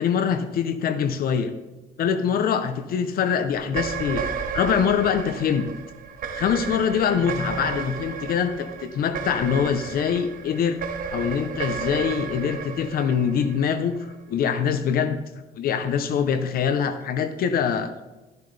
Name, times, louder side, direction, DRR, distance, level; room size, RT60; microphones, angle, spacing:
voice 1, 0.0-1.5 2.0-4.2 4.5-5.7 6.3-10.8 11.1-15.2 15.6-17.9, left 7 dB, 60° left, 10 dB, 0.8 m, -24 dB
sound 1, 3.6-14.1, right 6 dB, 55° right, 1.1 m, -33 dB
14.0 x 10.5 x 3.4 m, 1.1 s
cardioid pair, 110°, 17 cm